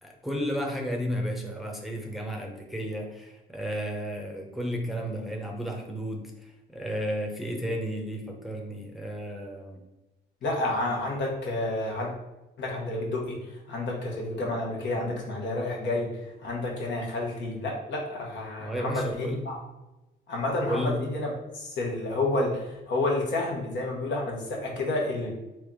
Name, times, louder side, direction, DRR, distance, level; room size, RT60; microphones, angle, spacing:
voice 1, 0.0-9.8 14.4-15.1 18.6-19.4 20.7-21.0, equal, ahead, 0 dB, 0.7 m, -33 dB
voice 2, 10.4-12.1 12.6-19.6 20.3-25.3, left 2 dB, 65° left, -1 dB, 1.1 m, -30 dB
3.4 x 2.9 x 3.6 m, 1.0 s
cardioid pair, 90°, 20 cm